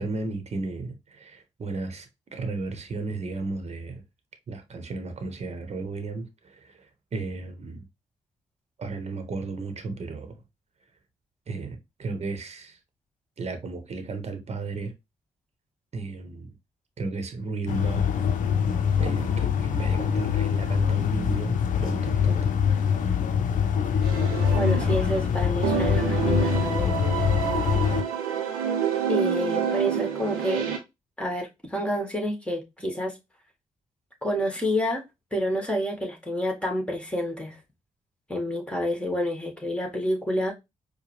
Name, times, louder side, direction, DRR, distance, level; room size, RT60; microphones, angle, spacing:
voice 1, 0.0-4.0 4.5-7.9 8.8-10.4 11.5-12.8 13.4-14.9 15.9-16.5 17.0-18.1 19.0-22.5, right 3 dB, 45° right, 1.0 m, -34 dB
sound 1, 17.7-28.0, left 7 dB, 60° left, 0.6 m, -24 dB
sound 2, 24.0-25.3 25.6-30.8, right 8 dB, 85° right, 0.7 m, -28 dB
voice 2, 24.5-27.0 29.1-30.7 31.2-33.2 34.2-35.0 35.3-37.6 38.3-40.5, equal, 5° left, 1.8 m, -28 dB
4.7 x 2.2 x 3.1 m
hypercardioid pair, 45°, 15 cm